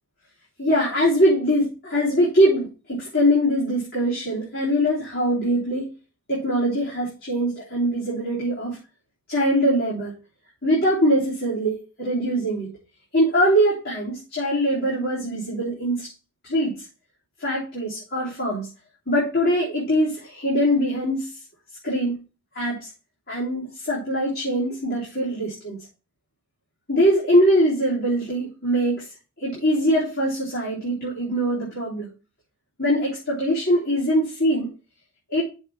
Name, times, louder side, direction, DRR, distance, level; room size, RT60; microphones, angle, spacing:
voice 1, 0.6-5.9 6.3-8.8 9.3-10.1 10.6-12.7 13.1-16.1 16.4-16.9 17.4-18.7 19.1-21.4 21.8-22.2 22.5-22.9 23.3-25.8 26.9-29.1 29.4-32.1 32.8-34.7 35.3-35.4, equal, 50° left, -8 dB, 3.5 m, -22 dB
7.0 x 4.5 x 6.2 m, 0.33 s
head